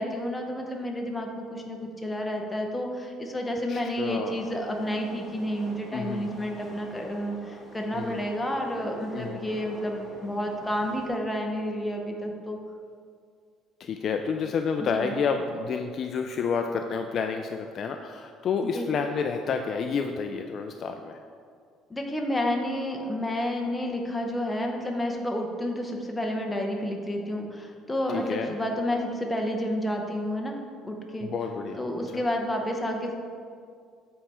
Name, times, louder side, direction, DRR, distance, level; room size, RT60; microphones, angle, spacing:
voice 1, 0.0-12.6 14.8-15.1 18.6-18.9 21.9-30.6 30.8-31.3 31.8-33.1, equal, 10° left, 1 dB, 0.7 m, -30 dB
voice 2, 3.7-4.4 5.9-6.4 7.9-8.2 9.1-9.4 13.8-21.2 28.1-28.5 31.2-31.8, left 5 dB, 40° left, 5 dB, 0.3 m, -29 dB
sound 1, 4.3-11.1, equal, 15° right, 1.4 m, -45 dB
7.7 x 4.7 x 4.3 m, 2.2 s
cardioid pair, 165°, 0 cm